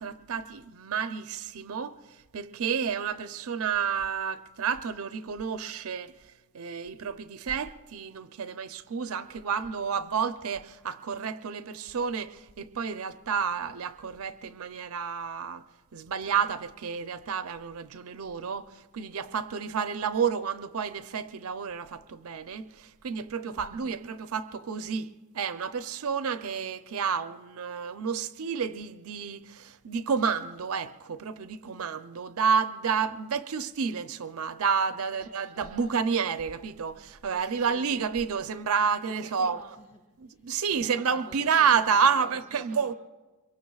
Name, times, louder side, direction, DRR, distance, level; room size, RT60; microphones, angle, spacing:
voice 1, 0.0-6.1 6.5-15.6 15.9-39.8 40.2-42.9, right 6 dB, 75° right, 0.6 m, -30 dB
voice 2, 23.4-23.9 35.1-36.0 37.3-37.9 39.2-42.2 42.6-43.0, left 1 dB, 30° left, 5.1 m, -54 dB
26.0 x 23.0 x 2.4 m
head